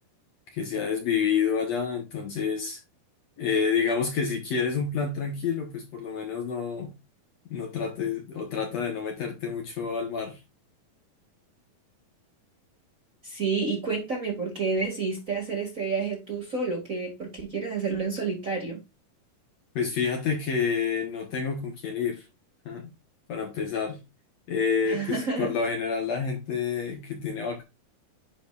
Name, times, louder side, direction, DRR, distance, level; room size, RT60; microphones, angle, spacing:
voice 1, 0.5-2.8 3.4-6.9 7.5-10.4 19.8-22.2 22.7-22.9 23.3-24.0 24.5-27.6, left 6 dB, 60° left, 2.1 m, -28 dB
voice 2, 13.2-18.8 24.8-25.5, right 4 dB, 30° right, 2.0 m, -29 dB
10.5 x 5.1 x 2.4 m
omnidirectional pair, 4.0 m